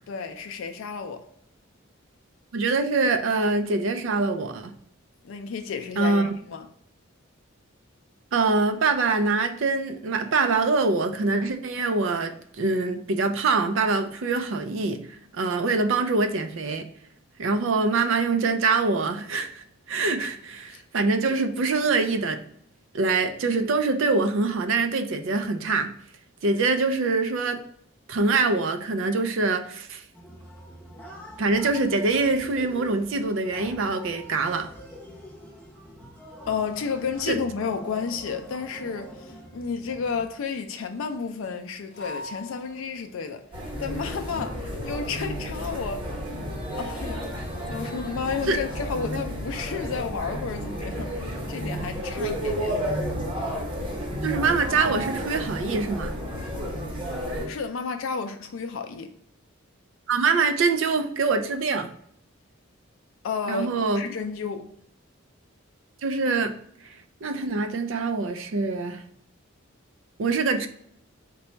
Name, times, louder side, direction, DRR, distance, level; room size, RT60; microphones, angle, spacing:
voice 1, 0.1-1.3 5.2-6.7 20.7-20.8 36.5-43.4 43.8-46.1 46.8-47.3 47.7-52.8 57.5-59.1 63.2-63.7 64.0-64.7, left 5 dB, 70° left, 0.4 m, -32 dB
voice 2, 2.5-4.7 6.0-6.3 8.3-15.0 15.3-16.9 17.4-22.4 22.9-25.9 26.4-27.6 28.1-30.0 31.4-34.7 37.3-37.4 48.5-48.6 54.2-56.1 60.1-61.9 63.5-64.0 66.0-66.5 67.2-69.0 70.2-70.7, right 3 dB, 65° right, 0.4 m, -24 dB
sound 1, 30.1-40.3, equal, 10° left, 0.7 m, -44 dB
sound 2, 38.6-39.7 41.9-43.3, left 1 dB, 55° left, 0.8 m, -43 dB
sound 3, 43.5-57.5, equal, 25° right, 0.9 m, -32 dB
3.9 x 2.2 x 4.3 m
head